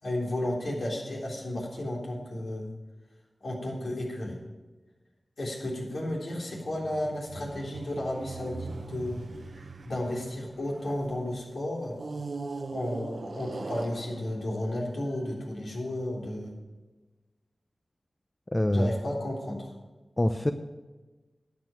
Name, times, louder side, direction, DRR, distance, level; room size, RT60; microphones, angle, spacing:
voice 1, 0.0-2.7 3.4-4.4 5.4-9.3 9.9-11.9 12.7-16.5 18.7-19.7, left 1 dB, 75° left, -2 dB, 3.7 m, -33 dB
sound 1, 6.5-11.2 11.9-15.3, right 3 dB, 70° right, 0.8 m, -41 dB
voice 2, 18.5-18.9 20.2-20.5, left 1 dB, 25° left, 8 dB, 0.7 m, -24 dB
13.0 x 8.8 x 5.9 m, 1.2 s
wide cardioid pair, 60°, 0 cm